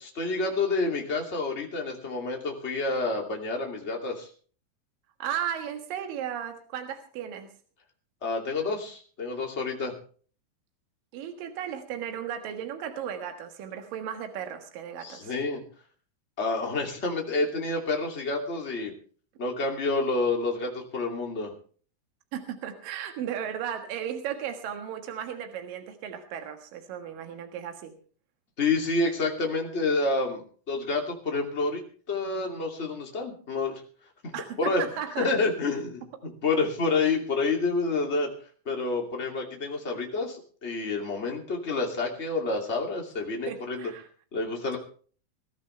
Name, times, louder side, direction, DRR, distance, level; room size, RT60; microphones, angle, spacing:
voice 1, 0.0-4.3 8.2-9.9 15.0-15.6 16.4-18.9 19.4-21.5 28.6-31.8 32.1-33.8 34.2-34.8 35.2-38.3 38.7-43.9 44.3-44.8, left 3 dB, 20° left, 1 dB, 2.5 m, -28 dB
voice 2, 5.2-7.5 11.1-15.3 22.3-27.9 34.3-35.3 43.5-44.1, right 9 dB, 70° right, 6 dB, 3.2 m, -35 dB
20.5 x 13.5 x 3.3 m, 0.42 s
omnidirectional pair, 4.1 m